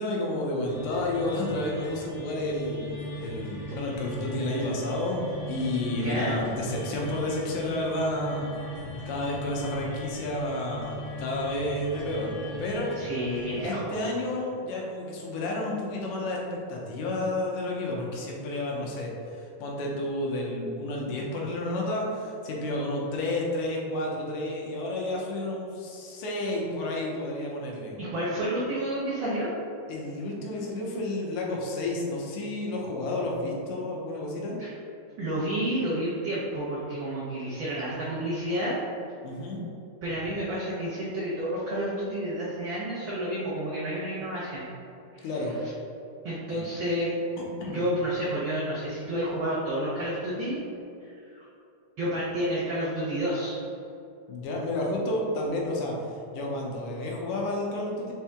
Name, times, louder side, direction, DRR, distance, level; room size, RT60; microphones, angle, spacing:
voice 1, 0.0-8.5 9.1-12.9 13.6-27.9 29.9-34.6 39.2-39.6 45.2-45.6 46.5-46.6 47.6-47.9 54.3-58.1, left 1 dB, 85° left, -2 dB, 2.2 m, -31 dB
sound 1, 0.6-13.6, left 1 dB, 60° left, 1.6 m, -39 dB
voice 2, 5.9-6.4 13.0-14.1 28.0-29.5 34.6-34.7 35.2-38.8 40.0-44.6 45.1-45.2 46.2-47.1 47.6-50.6 51.0-51.1 51.4-51.5 52.0-53.6, right 1 dB, 85° right, -8 dB, 1.0 m, -30 dB
5.2 x 2.9 x 3.5 m, 2.6 s
omnidirectional pair, 3.4 m